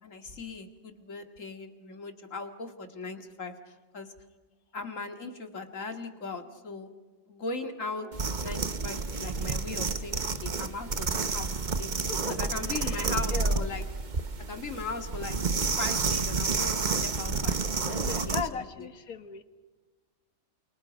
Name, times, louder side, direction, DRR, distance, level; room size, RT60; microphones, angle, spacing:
voice 1, 0.0-4.1 4.7-6.9 7.3-11.9 12.3-13.8 14.5-15.4 15.6-18.9, left 3 dB, 60° left, 6 dB, 2.4 m, -39 dB
sound 1, 8.1-18.5, right 4 dB, 35° right, 1.1 m, -30 dB
voice 2, 12.1-13.7 18.0-19.4, left 6 dB, 80° left, 10 dB, 2.0 m, -38 dB
28.5 x 28.5 x 5.2 m, 1.3 s
omnidirectional pair, 1.5 m